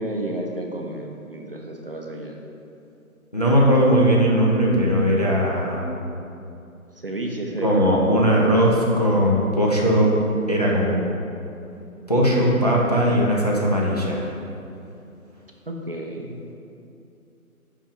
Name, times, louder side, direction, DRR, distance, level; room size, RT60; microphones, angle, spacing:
voice 1, 0.0-2.4 6.9-7.8 15.7-16.5, right 1 dB, 40° right, 1 dB, 0.5 m, -31 dB
voice 2, 3.3-6.0 7.6-10.1 10.5-11.0 12.1-14.3, equal, 30° left, -4 dB, 0.5 m, -19 dB
5.2 x 5.0 x 4.9 m, 2.7 s
figure-of-eight pair, 155°, 44 cm